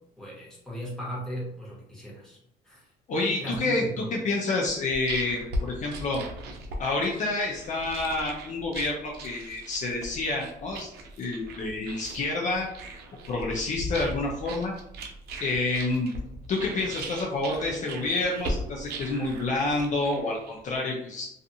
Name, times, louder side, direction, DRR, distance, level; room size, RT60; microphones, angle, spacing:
voice 1, 0.2-2.4 2.6-2.9 3.4-4.2, equal, 5° left, -6 dB, 1.2 m, -37 dB
voice 2, 3.1-6.2 6.8-10.9 11.2-12.7 13.3-14.7 15.4-16.1 16.5-21.3, left 2 dB, 45° left, -1 dB, 0.5 m, -28 dB
sound 1, 4.6-20.7, right 1 dB, 70° right, 0.6 m, -38 dB
2.5 x 2.4 x 2.7 m, 0.78 s
cardioid pair, 110°, 17 cm